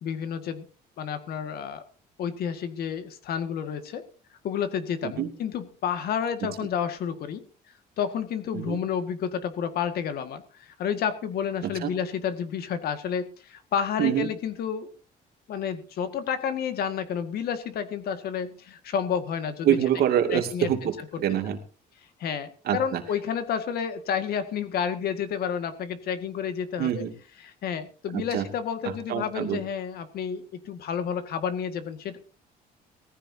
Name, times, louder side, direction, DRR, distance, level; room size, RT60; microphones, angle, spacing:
voice 1, 0.0-0.7 1.0-1.8 2.2-4.0 4.4-7.4 8.0-14.9 15.5-19.8 20.3-20.9 22.2-27.0 27.4-32.2, left 7 dB, 65° left, 9 dB, 1.9 m, -30 dB
voice 2, 19.6-21.6 22.7-23.0 26.8-27.1 28.1-28.4 29.1-29.6, right 10 dB, 70° right, 5 dB, 2.4 m, -25 dB
18.5 x 14.5 x 2.8 m, 0.35 s
cardioid pair, 110°, 17 cm